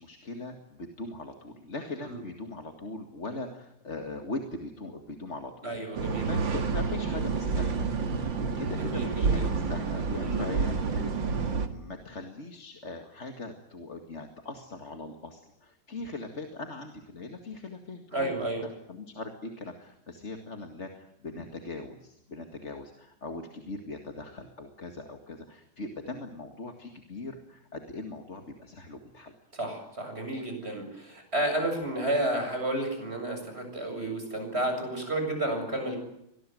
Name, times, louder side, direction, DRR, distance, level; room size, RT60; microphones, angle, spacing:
voice 1, 0.0-7.8 8.5-18.3 18.6-29.3, left 3 dB, 35° left, 5 dB, 2.2 m, -40 dB
voice 2, 5.6-6.3 8.8-9.5 10.2-10.5 18.1-18.6 29.5-36.0, right 1 dB, 30° right, 4 dB, 7.7 m, -31 dB
sound 1, 5.9-11.7, right 4 dB, 65° right, 2.7 m, -29 dB
24.5 x 20.0 x 9.3 m, 0.77 s
omnidirectional pair, 2.3 m